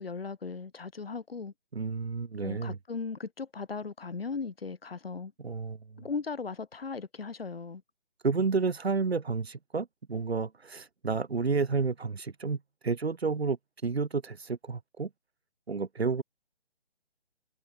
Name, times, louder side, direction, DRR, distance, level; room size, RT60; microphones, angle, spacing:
voice 1, 0.0-1.5 2.4-5.3 6.0-7.8, left 4 dB, 65° left, 6.0 m, -37 dB
voice 2, 1.7-2.8 5.4-6.0 8.2-15.1 15.7-16.2, right 4 dB, 75° right, 4.0 m, -31 dB
hypercardioid pair, 170°, 32 cm